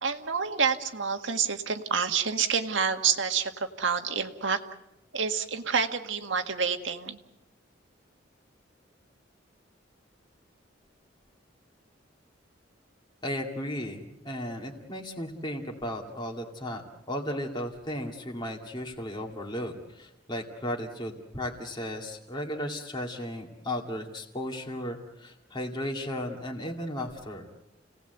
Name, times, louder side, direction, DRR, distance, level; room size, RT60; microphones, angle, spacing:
voice 1, 0.0-4.6 5.1-7.2, right 6 dB, 75° right, 6 dB, 1.7 m, -28 dB
voice 2, 13.2-16.8 17.1-27.5, equal, 25° left, 0 dB, 2.3 m, -35 dB
30.0 x 18.5 x 8.0 m, 0.92 s
head